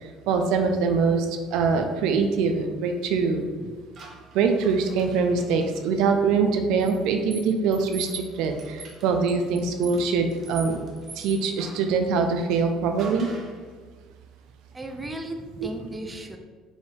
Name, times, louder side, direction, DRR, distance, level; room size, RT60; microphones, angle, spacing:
voice 1, 0.0-3.4 4.3-10.9 11.2-13.3 15.6-15.7, right 5 dB, 75° right, 5 dB, 0.4 m, -23 dB
sound 1, 3.9-5.8 6.8-11.9 13.0-13.6, right 4 dB, 45° right, 0.8 m, -43 dB
voice 2, 14.7-16.4, right 1 dB, 15° right, 5 dB, 0.4 m, -35 dB
4.7 x 2.6 x 3.2 m, 1.5 s
cardioid pair, 115°, 0 cm